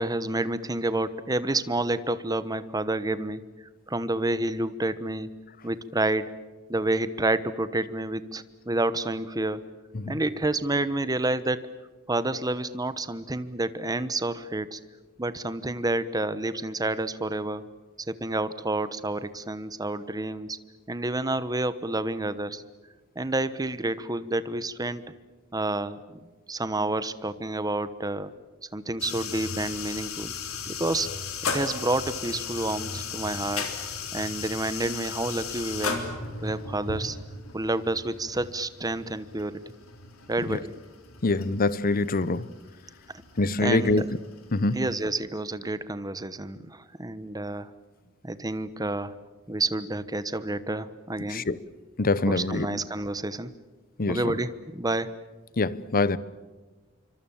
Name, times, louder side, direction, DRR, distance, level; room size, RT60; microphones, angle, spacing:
voice 1, 0.0-3.4 3.9-5.3 5.6-6.3 6.7-9.7 10.1-11.7 12.1-14.8 15.2-17.6 18.1-20.6 20.9-22.6 23.1-25.1 25.5-26.2 26.5-28.3 28.7-30.3 30.7-31.1 31.4-33.7 34.1-36.0 36.4-37.2 37.5-39.7 40.3-40.7 43.6-44.1 44.7-47.7 48.2-49.1 49.5-51.4 52.3-53.5 54.1-55.1, right 2 dB, 20° right, 1.1 m, -29 dB
sound 1, 29.0-45.0, left 5 dB, 85° left, 3.7 m, -36 dB
voice 2, 41.2-42.5 43.4-44.0 44.5-44.9 51.3-51.6 52.0-52.8 54.0-54.3 55.6-56.2, left 2 dB, 45° left, 0.9 m, -25 dB
27.0 x 25.0 x 7.3 m
head